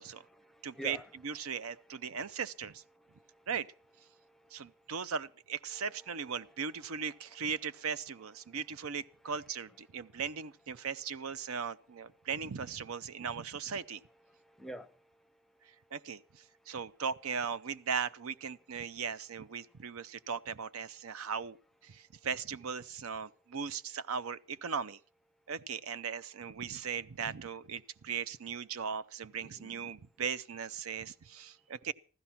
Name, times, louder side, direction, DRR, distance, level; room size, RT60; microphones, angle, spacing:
voice 1, 0.0-2.4 2.9-3.5 4.1-5.0 5.7-10.2 10.8-10.9 11.4-12.3 13.0-13.3 13.7-17.0 18.8-19.0 19.6-20.3 21.0-21.3 21.9-22.3 25.3-25.5 29.4-30.0 31.5-31.7, equal, ahead, 0.6 m, -55 dB
voice 2, 0.6-1.0 1.2-2.8 3.5-3.7 4.5-14.0 15.9-21.6 21.8-25.0 25.5-31.9, right 6 dB, 80° right, 0.6 m, -38 dB
15.5 x 13.0 x 5.8 m
head